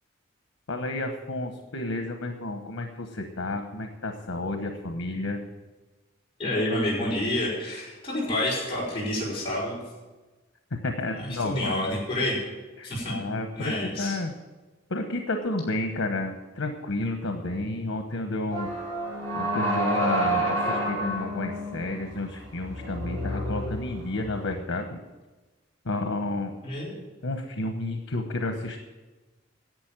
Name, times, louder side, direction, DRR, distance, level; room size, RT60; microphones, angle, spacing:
voice 1, 0.7-5.4 10.7-12.0 12.8-14.3 14.9-18.7 19.3-25.0 25.8-26.6 27.2-28.8, left 2 dB, 85° left, 5 dB, 1.1 m, -31 dB
voice 2, 6.4-9.8 11.2-12.4 12.8-13.1 13.6-14.2 26.6-27.0, left 1 dB, 25° left, -7 dB, 5.4 m, -28 dB
sound 1, 18.5-24.5, right 1 dB, 30° right, 4.0 m, -29 dB
11.5 x 7.9 x 9.0 m, 1.2 s
head